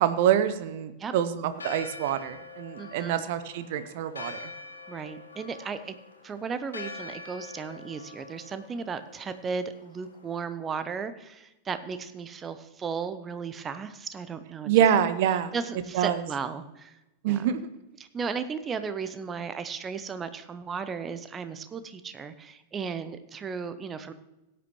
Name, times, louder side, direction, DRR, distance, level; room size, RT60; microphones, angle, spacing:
voice 1, 0.0-4.4 14.7-15.5 15.9-16.2 17.2-17.6, right 10 dB, 50° right, 12 dB, 0.8 m, -25 dB
Church bell, 1.5-10.4, left 3 dB, 75° left, 1.2 m, -44 dB
voice 2, 2.8-3.3 4.9-5.9 6.2-14.7 15.5-16.9 17.3-17.5 18.1-24.1, right 5 dB, 20° right, 11 dB, 0.8 m, -35 dB
17.0 x 9.3 x 3.1 m, 0.96 s
figure-of-eight pair, 90°, 0 cm